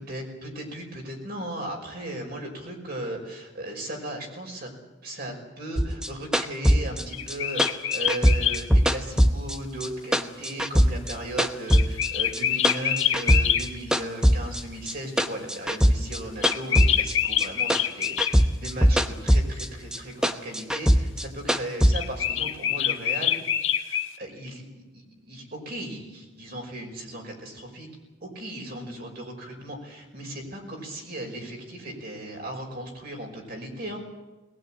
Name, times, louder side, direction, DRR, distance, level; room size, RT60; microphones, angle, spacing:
voice 1, 0.0-4.7 5.0-23.3 23.8-24.7 24.9-27.9 28.2-34.0, right 1 dB, 45° right, 1 dB, 5.6 m, -37 dB
sound 1, 5.8-9.9 10.1-12.1 12.3-13.7 13.9-17.5 17.7-19.7 19.9-21.9, equal, 5° right, 0.9 m, -21 dB
sound 2, 7.1-8.6 11.7-13.6 16.4-18.4 21.9-24.1, left 10 dB, 70° left, 1.5 m, -25 dB
20.5 x 19.5 x 9.0 m, 1.1 s
head